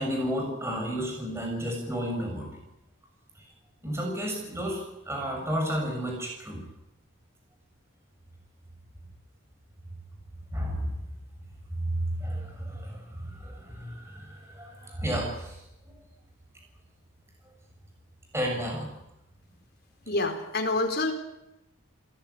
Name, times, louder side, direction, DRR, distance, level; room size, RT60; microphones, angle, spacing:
voice 1, 0.0-2.5 3.8-4.8 5.0-6.6 10.5-10.8 11.8-15.6 18.3-18.9, equal, 15° right, 1 dB, 6.8 m, -32 dB
voice 2, 20.1-21.1, left 2 dB, 50° left, 3 dB, 4.4 m, -27 dB
27.5 x 16.5 x 9.7 m, 0.89 s
head